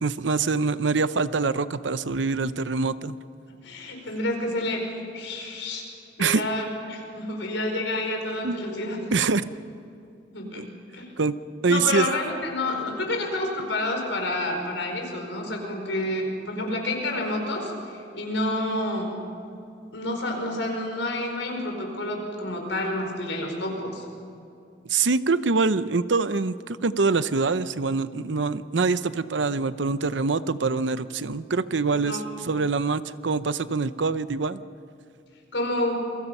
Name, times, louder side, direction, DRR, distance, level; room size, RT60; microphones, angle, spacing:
voice 1, 0.0-3.2 6.2-6.4 8.4-8.6 9.1-9.4 10.6-10.7 11.2-11.3 11.6-12.1 24.8-34.6, right 4 dB, 75° right, 14 dB, 0.7 m, -24 dB
voice 2, 3.5-5.9 6.2-9.1 10.3-10.6 10.9-11.1 11.6-19.2 19.9-24.1 31.9-32.3 35.5-36.1, left 1 dB, 85° left, 2 dB, 5.3 m, -29 dB
28.5 x 23.0 x 5.5 m, 2.6 s
head